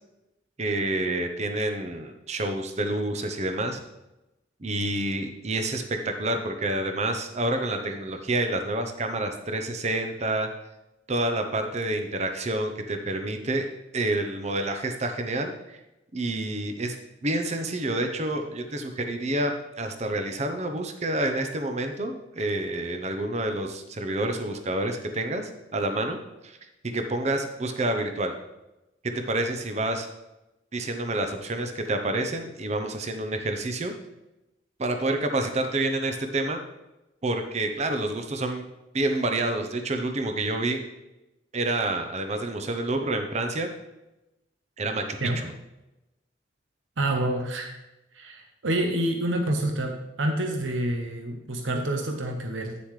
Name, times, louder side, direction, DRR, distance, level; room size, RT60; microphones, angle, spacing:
voice 1, 0.6-3.8 4.6-10.5 11.1-13.7 13.9-15.8 16.1-17.0 17.2-26.2 26.4-26.6 26.9-28.3 29.0-30.1 30.7-33.9 34.8-36.6 37.2-38.6 38.9-40.8 41.5-43.7 44.8-45.5, right 2 dB, 35° right, 5 dB, 0.7 m, -28 dB
voice 2, 47.0-47.7 48.1-52.8, right 1 dB, 85° right, 4 dB, 0.9 m, -28 dB
9.4 x 7.0 x 3.2 m, 0.96 s
head